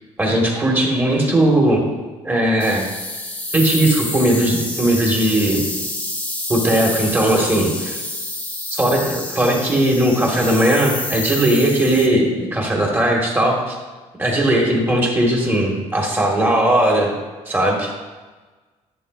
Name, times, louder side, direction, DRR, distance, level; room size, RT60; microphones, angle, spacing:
voice 1, 0.2-1.9 2.2-2.8 3.5-5.6 6.5-8.0 8.7-13.8 14.2-17.1 17.4-17.9, right 1 dB, 15° right, -1 dB, 1.6 m, -18 dB
sound 1, 2.6-12.1, left 1 dB, 10° left, 1.0 m, -28 dB
11.0 x 8.2 x 2.5 m, 1.3 s
cardioid pair, 135°, 12 cm